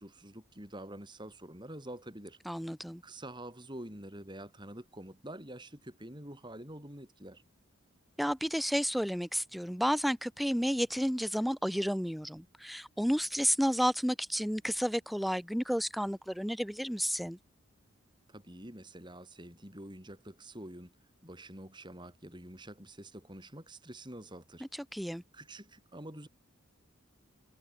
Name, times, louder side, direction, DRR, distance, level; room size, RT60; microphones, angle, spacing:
voice 1, 0.0-2.4 3.0-7.4 18.3-21.0 21.2-24.7 25.3-26.3, right 1 dB, 20° right, 5.2 m, -47 dB
voice 2, 2.5-3.0 8.2-17.4 24.9-25.2, equal, ahead, 1.0 m, -31 dB
head